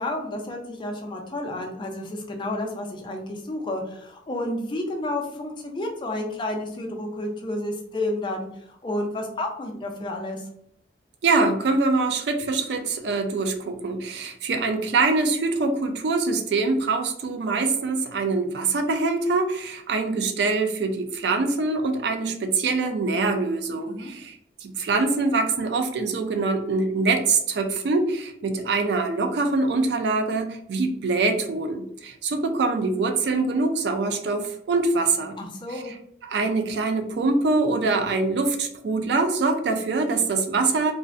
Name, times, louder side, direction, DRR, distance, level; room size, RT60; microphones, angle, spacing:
voice 1, 0.0-8.5 8.8-10.5 23.8-24.1 35.4-35.9, left 1 dB, 25° left, 2 dB, 0.4 m, -31 dB
voice 2, 11.2-24.4 24.6-35.4 35.7-35.8 36.2-40.9, right 3 dB, 70° right, 5 dB, 0.4 m, -24 dB
2.4 x 2.0 x 2.4 m, 0.70 s
head